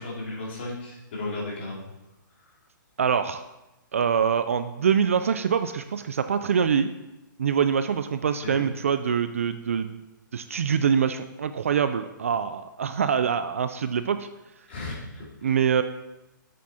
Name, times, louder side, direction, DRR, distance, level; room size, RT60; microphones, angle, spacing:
voice 1, 0.0-1.8 8.4-8.6 14.7-15.5, left 2 dB, 35° left, -4 dB, 2.4 m, -35 dB
voice 2, 3.0-3.4 3.9-6.9 7.4-10.0 10.3-14.3 15.4-15.8, right 7 dB, 40° right, 10 dB, 0.3 m, -24 dB
7.6 x 7.2 x 4.2 m, 0.96 s
hypercardioid pair, 180°, 11 cm